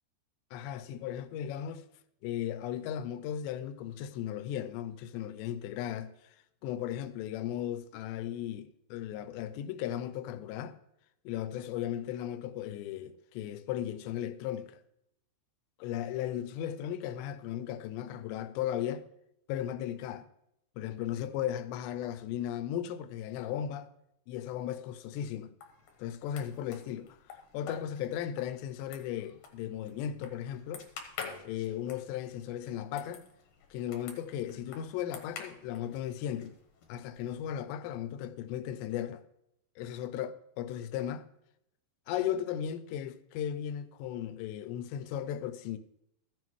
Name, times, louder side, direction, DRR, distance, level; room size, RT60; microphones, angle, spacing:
voice 1, 0.5-1.8 2.2-6.4 6.6-10.8 11.3-14.8 15.8-19.1 19.5-20.3 20.8-23.9 24.3-25.5 26.0-27.2 27.5-30.8 31.4-33.2 33.7-36.6 36.9-39.2 39.8-41.3 42.1-45.8, left 10 dB, 85° left, 2.8 m, -36 dB
sound 1, 25.6-37.5, left 6 dB, 65° left, 2.0 m, -49 dB
15.5 x 7.5 x 3.1 m
omnidirectional pair, 5.0 m